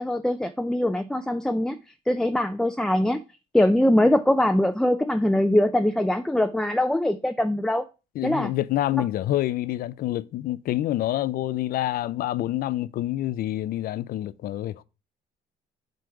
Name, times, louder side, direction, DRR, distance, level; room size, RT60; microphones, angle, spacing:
voice 1, 0.0-1.8 2.1-3.2 3.5-7.8 8.2-8.5, left 1 dB, 5° left, 0.4 m, -22 dB
voice 2, 8.2-14.8, left 14 dB, 60° left, 0.5 m, -27 dB
7.8 x 3.3 x 4.6 m
cardioid pair, 110°, 17 cm